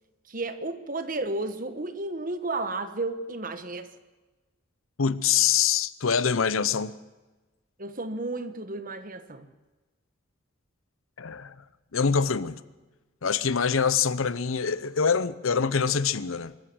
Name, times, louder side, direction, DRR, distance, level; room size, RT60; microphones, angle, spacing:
voice 1, 0.3-3.9 7.8-9.5, right 2 dB, 40° right, 1.4 m, -32 dB
voice 2, 5.0-6.9 11.2-11.5 11.9-12.6 13.2-16.5, left 6 dB, 80° left, 0.8 m, -25 dB
24.0 x 14.0 x 7.9 m
head